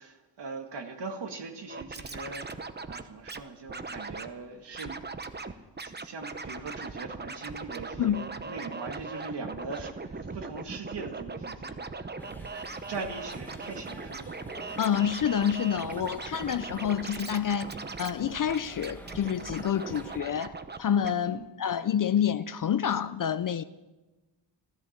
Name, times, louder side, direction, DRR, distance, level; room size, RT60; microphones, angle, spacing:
voice 1, 0.0-5.0 5.3-14.4 14.8-15.0 21.2-21.5, right 4 dB, 65° right, 1.9 m, -41 dB
Scratching (performance technique), 1.7-3.4 3.7-4.3 4.7-5.5 5.8-20.8 21.0-21.1, right 3 dB, 25° right, 0.8 m, -39 dB
sound 1, 12.2-20.2, left 1 dB, 5° left, 1.8 m, -48 dB
voice 2, 14.8-20.5 20.8-23.6, left 9 dB, 50° left, 0.5 m, -28 dB
14.5 x 13.5 x 7.3 m
wide cardioid pair, 115°, 44 cm